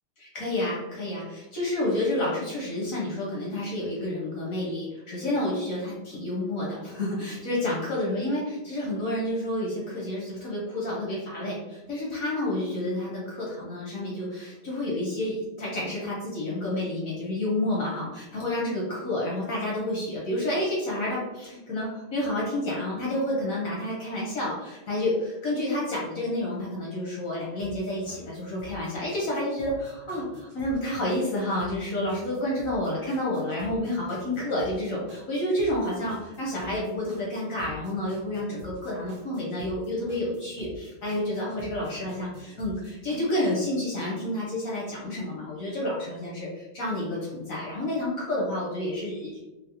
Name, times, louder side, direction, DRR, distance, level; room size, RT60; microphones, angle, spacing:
voice 1, 0.2-49.4, left 1 dB, 70° left, -4 dB, 0.8 m, -30 dB
sound 1, 27.6-43.6, left 1 dB, 65° right, 1.2 m, -48 dB
3.9 x 2.1 x 2.7 m, 1.0 s
omnidirectional pair, 2.2 m